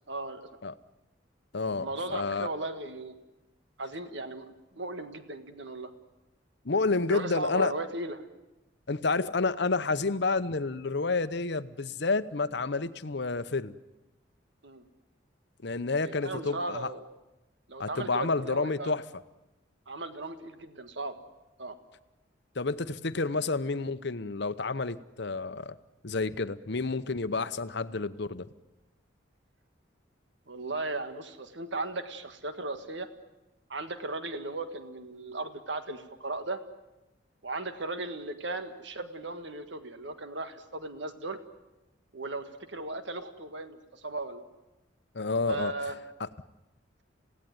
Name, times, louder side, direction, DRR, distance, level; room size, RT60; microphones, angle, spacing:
voice 1, 0.1-0.5 1.8-3.2 3.8-5.9 7.1-8.2 14.6-14.8 16.0-17.0 17.7-19.0 19.9-21.2 21.6-21.8 30.5-33.1 33.7-36.6 37.4-41.4 42.1-44.4 45.5-46.0, right 2 dB, 65° right, 9 dB, 1.7 m, -36 dB
voice 2, 1.5-2.5 6.6-7.7 8.9-13.7 15.6-16.9 17.8-19.0 22.6-25.8 26.0-28.5 45.1-45.7 46.2-46.3, left 3 dB, 60° left, 13 dB, 0.9 m, -30 dB
27.5 x 17.5 x 9.5 m, 1.0 s
head